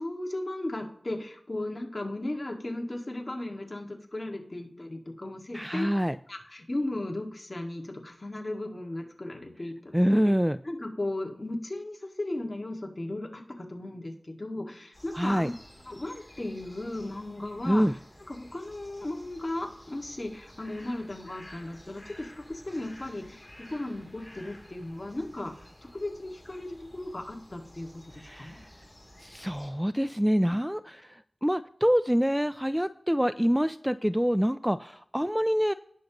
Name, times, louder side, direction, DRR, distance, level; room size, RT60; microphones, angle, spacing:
voice 1, 0.0-5.9 6.3-10.2 10.6-15.5 15.8-18.0 18.3-25.7 25.9-28.0 28.4-28.6, left 1 dB, 40° left, 2 dB, 1.9 m, -36 dB
voice 2, 5.5-6.2 9.9-10.6 15.1-15.5 17.7-17.9 28.2-28.6 29.2-35.7, equal, 5° right, 13 dB, 0.3 m, -26 dB
sound 1, 14.9-29.7, left 1 dB, 15° left, 3.1 m, -52 dB
18.5 x 6.5 x 3.0 m, 0.71 s
wide cardioid pair, 55°, 0 cm